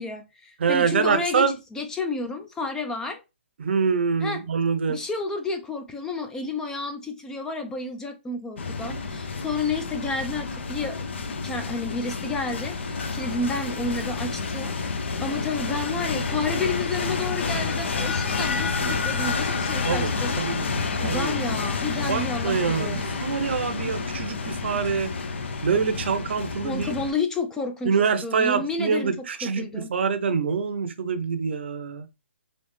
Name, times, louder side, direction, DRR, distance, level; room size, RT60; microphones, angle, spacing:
voice 1, 0.0-3.2 4.2-4.4 4.9-11.0 11.4-14.8 15.2-20.3 21.0-23.4 26.6-28.0 28.2-29.9, left 3 dB, 10° left, 0.3 m, -31 dB
voice 2, 0.6-1.5 3.6-5.0 19.8-21.3 22.0-25.1 25.6-26.9 27.9-32.1, right 6 dB, 60° right, 0.6 m, -25 dB
sound 1, 8.6-27.1, left 4 dB, 65° left, 0.6 m, -29 dB
3.3 x 2.7 x 3.1 m
hypercardioid pair, 145°, 7 cm